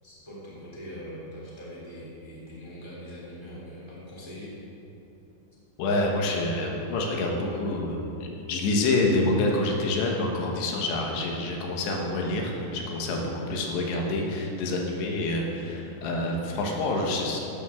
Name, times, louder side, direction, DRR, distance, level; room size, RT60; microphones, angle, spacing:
voice 1, 0.0-4.5, equal, 5° right, -6 dB, 2.6 m, -42 dB
voice 2, 5.8-17.4, left 2 dB, 90° left, 0 dB, 3.6 m, -27 dB
15.5 x 11.5 x 3.8 m, 2.9 s
omnidirectional pair, 4.8 m